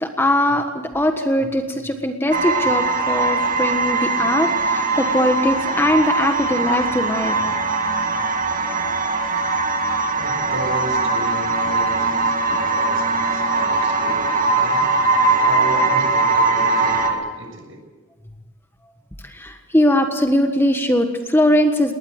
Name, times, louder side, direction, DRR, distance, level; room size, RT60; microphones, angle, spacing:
voice 1, 0.0-7.4 19.3-21.9, left 1 dB, 10° left, 5 dB, 1.4 m, -20 dB
sound 1, 2.3-17.1, right 3 dB, 40° right, 2.2 m, -20 dB
voice 2, 10.2-14.9 15.4-17.8, right 1 dB, 65° right, 4 dB, 6.5 m, -34 dB
21.0 x 19.0 x 8.1 m, 1.2 s
head